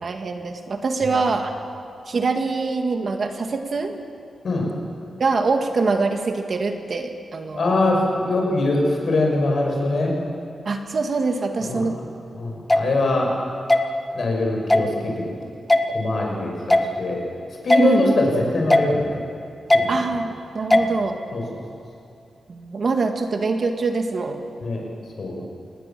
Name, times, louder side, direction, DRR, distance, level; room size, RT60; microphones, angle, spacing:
voice 1, 0.0-1.5 2.1-4.0 5.2-7.8 10.7-12.0 17.8-18.1 19.9-21.2 22.5-24.4, right 4 dB, 45° right, 5 dB, 1.8 m, -24 dB
voice 2, 7.5-10.1 11.6-11.9 12.3-13.3 14.1-15.2 15.9-17.2 17.6-19.2 19.7-19.9 20.7-20.8 21.3-21.4 24.6-24.8 25.2-25.4, left 2 dB, 55° left, 0 dB, 6.4 m, -22 dB
sound 1, 12.7-12.8 13.7-13.8 14.7-14.9 15.7-15.8 16.7-16.9 17.7-17.8 18.7-18.9 19.7-19.8 20.7-20.9, left 1 dB, 10° left, 1.1 m, -16 dB
28.0 x 20.0 x 7.5 m, 2.6 s
wide cardioid pair, 155°, 0 cm